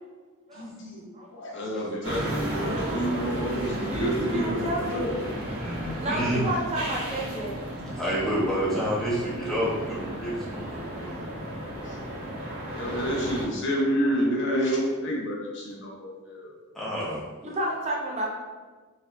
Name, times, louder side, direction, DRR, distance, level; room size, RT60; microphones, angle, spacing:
voice 1, 0.5-1.0 1.3-5.1 5.8-6.1 11.8-12.1 12.7-16.5, equal, 55° left, -2 dB, 0.7 m, -29 dB
sound 1, 2.0-13.5, equal, 85° right, 1.0 m, -34 dB
voice 2, 2.5-3.4 3.9-5.0 6.0-8.0 17.4-18.3, right 1 dB, 30° right, -3 dB, 0.5 m, -31 dB
voice 3, 5.6-6.5 8.0-11.2 16.7-17.3, equal, ahead, -9 dB, 1.0 m, -29 dB
4.3 x 2.6 x 2.3 m, 1.4 s
head